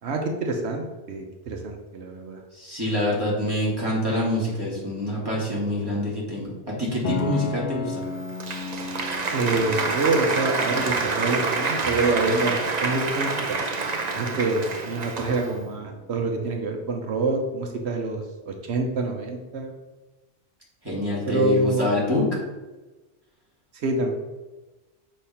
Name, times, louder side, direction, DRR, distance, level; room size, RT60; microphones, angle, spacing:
voice 1, 0.0-2.4 9.3-12.5 12.8-13.6 14.1-19.7 21.3-21.9 23.7-24.1, right 3 dB, 85° right, 3 dB, 1.1 m, -26 dB
voice 2, 2.5-8.0 20.8-22.4, left 1 dB, 20° right, -5 dB, 2.1 m, -26 dB
Piano, 7.0-16.6, left 5 dB, 65° left, 0.7 m, -37 dB
Applause, 8.0-15.6, right 3 dB, 45° right, 0.8 m, -27 dB
6.6 x 3.2 x 5.6 m, 1.2 s
omnidirectional pair, 1.1 m